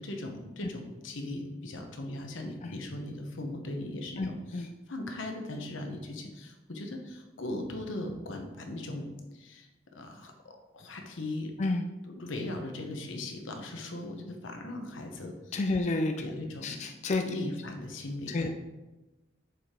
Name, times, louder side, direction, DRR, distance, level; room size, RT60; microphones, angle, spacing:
voice 1, 0.0-9.1 9.3-9.7 9.9-11.5 12.1-15.8 16.2-16.8 17.2-18.5, left 1 dB, 90° left, 3 dB, 1.0 m, -39 dB
voice 2, 15.5-16.1 16.6-17.2 18.3-18.5, left 2 dB, 35° left, 5 dB, 0.4 m, -29 dB
6.9 x 5.0 x 3.7 m, 1.1 s
head